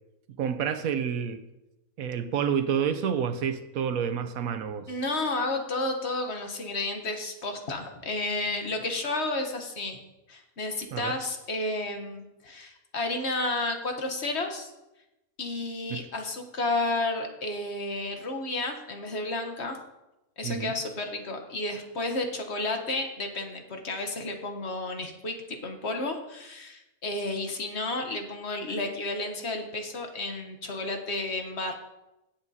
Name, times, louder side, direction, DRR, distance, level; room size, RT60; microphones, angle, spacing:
voice 1, 0.4-1.4 2.0-4.9 10.9-11.1 15.9-16.0 20.4-20.8, right 7 dB, 75° right, 1.1 m, -29 dB
voice 2, 4.9-10.0 10.3-14.7 15.4-19.8 20.4-31.7, left 2 dB, 50° left, 1.3 m, -32 dB
17.0 x 7.2 x 2.8 m
omnidirectional pair, 1.5 m